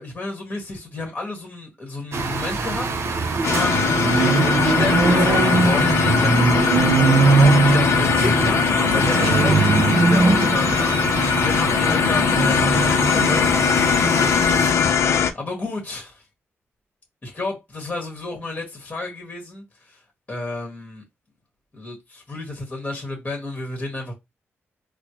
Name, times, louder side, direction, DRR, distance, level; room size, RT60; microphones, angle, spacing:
voice 1, 0.0-2.9 3.2-6.8 7.1-13.9 14.3-15.0 15.3-16.2 17.2-20.0 20.3-21.0 21.7-24.1, left 2 dB, 25° left, 1.4 m, -31 dB
sound 1, 2.1-14.7, right 4 dB, 60° right, 0.7 m, -21 dB
sound 2, 3.4-15.3, left 7 dB, 75° left, 0.5 m, -20 dB
4.2 x 2.1 x 3.0 m
cardioid pair, 90°, 5 cm